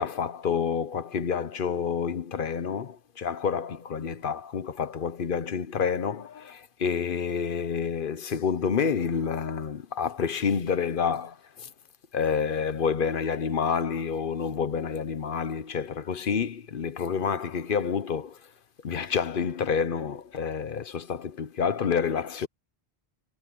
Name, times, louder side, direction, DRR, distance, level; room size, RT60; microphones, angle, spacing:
voice 1, 0.0-11.7 12.1-18.4 18.8-22.5, left 6 dB, 55° left, 1.0 m, -28 dB
omnidirectional pair, 1.1 m